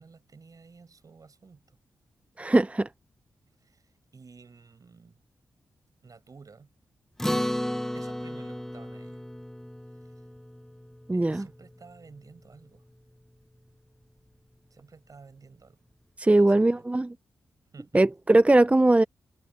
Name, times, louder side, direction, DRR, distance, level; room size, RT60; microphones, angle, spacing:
voice 1, 0.0-1.8 3.6-5.2 6.0-6.7 7.9-9.2 10.0-10.1 11.1-12.9 14.7-15.8 16.2-16.9 17.7-18.0, right 4 dB, 55° right, 7.0 m, -52 dB
voice 2, 2.4-2.9 11.1-11.5 16.2-17.1 17.9-19.0, right 2 dB, 20° right, 0.6 m, -20 dB
Acoustic guitar, 7.2-11.9, equal, 5° left, 0.9 m, -34 dB
supercardioid pair, 40°, 7 cm